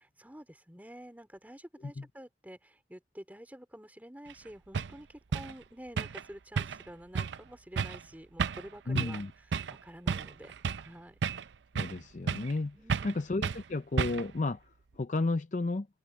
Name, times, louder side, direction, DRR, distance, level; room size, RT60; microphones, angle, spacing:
voice 1, 0.0-9.2 9.5-11.2 12.7-13.1, equal, 10° right, 3.8 m, -49 dB
sound 1, 4.3-4.4 4.7-4.9 5.3-5.5 6.0-6.2 6.6-6.9 7.1-7.4 7.8-8.0 8.4-8.7 9.0-9.2 9.5-9.8 10.1-10.9 11.2-12.0 12.3-12.6 12.9-13.2 13.4-13.6 14.0-14.4, right 5 dB, 80° right, 0.5 m, -32 dB
voice 2, 8.9-9.3 11.7-12.8 13.0-14.6 14.9-15.9, left 3 dB, 45° left, 0.6 m, -32 dB
head